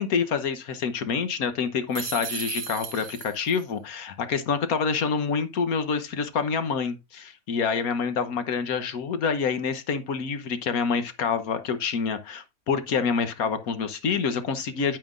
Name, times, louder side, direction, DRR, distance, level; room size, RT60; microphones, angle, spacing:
voice 1, 0.0-15.0, left 5 dB, 70° left, 1.4 m, -27 dB
sound 1, 1.9-3.6, right 8 dB, 70° right, 1.4 m, -35 dB
9.1 x 8.8 x 2.5 m
omnidirectional pair, 1.6 m